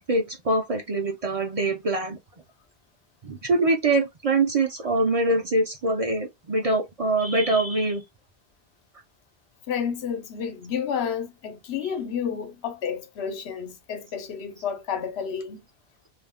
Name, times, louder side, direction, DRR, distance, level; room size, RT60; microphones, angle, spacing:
voice 1, 0.1-2.2 3.2-8.0, right 2 dB, 45° right, 0.5 m, -24 dB
voice 2, 9.7-15.6, left 7 dB, 90° left, 0.9 m, -30 dB
2.4 x 2.2 x 3.4 m
omnidirectional pair, 1.1 m